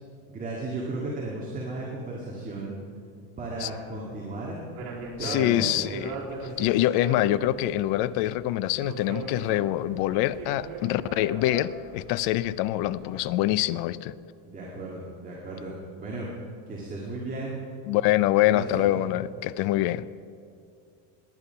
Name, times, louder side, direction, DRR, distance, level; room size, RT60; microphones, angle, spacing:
voice 1, 0.3-2.8 3.4-4.6 5.2-6.0 14.4-15.7 16.0-16.3 16.7-17.6 18.4-18.9, right 2 dB, 20° right, -4 dB, 2.0 m, -35 dB
sound 1, 4.8-13.3, right 3 dB, 60° right, 3.5 m, -39 dB
voice 2, 5.2-6.2 6.6-14.1 17.9-20.1, left 14 dB, 60° left, 18 dB, 0.6 m, -25 dB
19.0 x 9.9 x 5.7 m, 2.4 s
cardioid pair, 150°, 43 cm